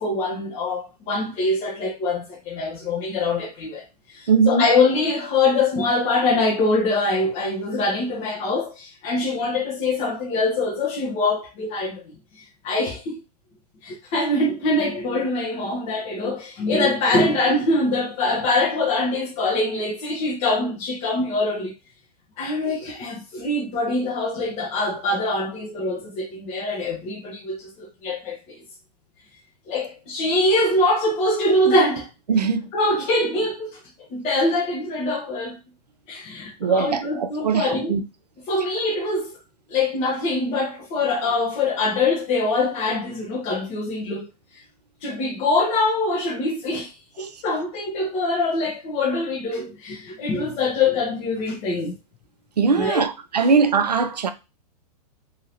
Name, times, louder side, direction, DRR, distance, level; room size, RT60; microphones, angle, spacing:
voice 1, 0.0-12.0 12.4-13.2 13.8-21.7 22.4-28.6 29.7-32.1 32.7-33.8 34.1-35.6 36.1-38.0 38.5-39.3 39.7-44.3 44.5-44.6 45.0-52.0 52.7-53.1, left 2 dB, 30° left, 0.8 m, -24 dB
voice 2, 4.3-4.7 32.3-32.7 36.6-38.0 47.2-47.3 52.6-54.3, right 5 dB, 75° right, 0.6 m, -20 dB
2.8 x 2.8 x 2.9 m
figure-of-eight pair, 105°, 21 cm